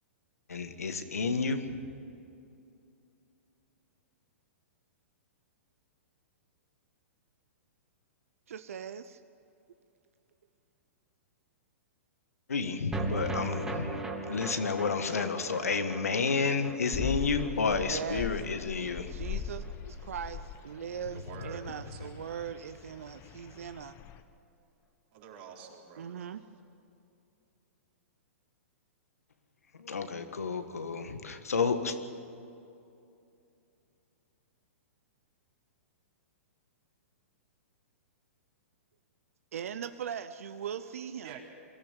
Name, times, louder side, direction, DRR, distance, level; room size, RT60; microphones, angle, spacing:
voice 1, 0.5-1.8 12.5-14.0 14.3-19.1 29.8-32.0, left 4 dB, 90° left, 8 dB, 1.7 m, -31 dB
voice 2, 8.5-9.2 17.9-18.3 19.1-19.7 20.0-23.9 26.0-26.4 39.5-41.4, right 8 dB, 75° right, 11 dB, 0.8 m, -40 dB
sound 1, 12.9-19.4 19.6-19.7 20.0-20.1, right 2 dB, 10° right, 2.8 m, -38 dB
sound 2, 16.9-24.2, left 8 dB, 35° left, 1.2 m, -40 dB
voice 3, 21.1-22.1 25.1-26.2 41.2-41.4, right 6 dB, 50° right, 0 dB, 4.1 m, -48 dB
23.0 x 14.0 x 9.1 m, 2.6 s
hypercardioid pair, 125°, 8 cm